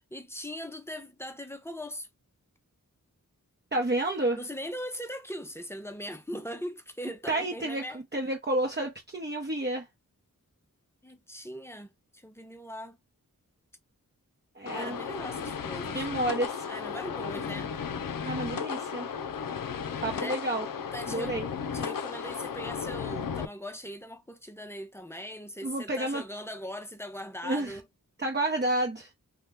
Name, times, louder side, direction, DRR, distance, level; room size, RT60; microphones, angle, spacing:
voice 1, 0.1-2.1 4.3-8.0 11.0-13.0 14.7-16.1 16.7-17.7 20.1-20.4 20.9-21.4 21.7-27.9, equal, 5° left, 0.6 m, -40 dB
voice 2, 3.7-4.4 7.3-9.9 14.6-15.0 15.9-16.7 18.2-19.1 20.0-20.7 21.1-21.5 25.6-26.2 27.4-27.8 28.2-29.1, right 1 dB, 30° right, 0.8 m, -30 dB
sound 1, 14.7-23.5, left 6 dB, 70° left, 0.5 m, -35 dB
2.9 x 2.3 x 3.4 m
wide cardioid pair, 55°, 35 cm